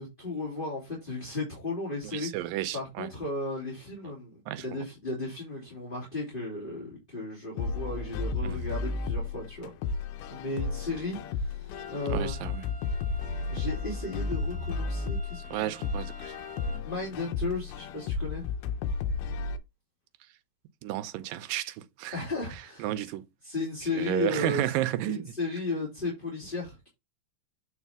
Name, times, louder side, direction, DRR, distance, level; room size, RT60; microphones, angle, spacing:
voice 1, 0.0-2.3 2.7-9.7 10.3-12.3 13.5-15.7 16.9-18.4 22.1-22.9 23.4-24.7 25.1-26.9, left 2 dB, 15° left, 2.2 m, -35 dB
voice 2, 2.0-3.1 4.5-4.9 8.4-8.6 12.1-12.7 15.5-16.4 16.7-16.8 20.8-22.2 22.8-23.3 23.9-25.3, right 14 dB, 80° right, 2.4 m, -32 dB
sound 1, 7.6-19.6, left 4 dB, 75° left, 2.2 m, -33 dB
sound 2, 11.7-16.8, right 3 dB, 10° right, 2.8 m, -50 dB
8.2 x 4.8 x 3.5 m
omnidirectional pair, 4.0 m